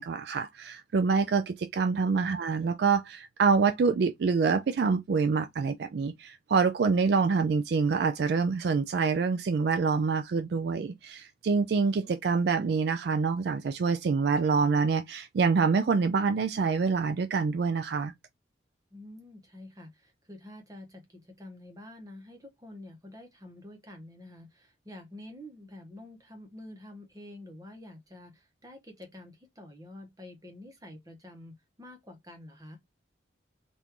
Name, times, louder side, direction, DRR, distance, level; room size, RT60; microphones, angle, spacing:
voice 1, 0.0-18.1, right 5 dB, 55° right, 0.3 m, -26 dB
voice 2, 18.9-32.8, left 1 dB, 20° right, 0.9 m, -48 dB
3.6 x 2.5 x 2.9 m
head